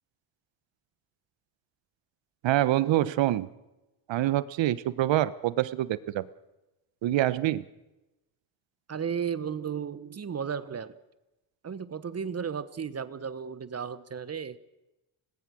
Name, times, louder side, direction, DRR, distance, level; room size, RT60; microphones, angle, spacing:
voice 1, 2.4-3.5 4.1-6.3 7.0-7.6, right 14 dB, 65° right, 16 dB, 1.2 m, -26 dB
voice 2, 8.9-11.0 11.6-14.6, right 7 dB, 30° right, 15 dB, 1.1 m, -34 dB
25.0 x 19.0 x 6.4 m, 1.0 s
supercardioid pair, 85°, 48 cm